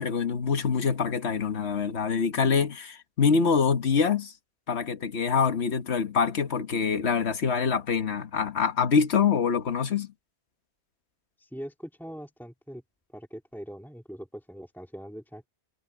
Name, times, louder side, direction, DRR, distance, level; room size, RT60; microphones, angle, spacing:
voice 1, 0.0-4.3 4.7-10.1, left 6 dB, 70° left, 1.5 m, -25 dB
voice 2, 11.4-12.8 13.1-15.5, equal, ahead, 2.7 m, -42 dB
omnidirectional pair, 1.1 m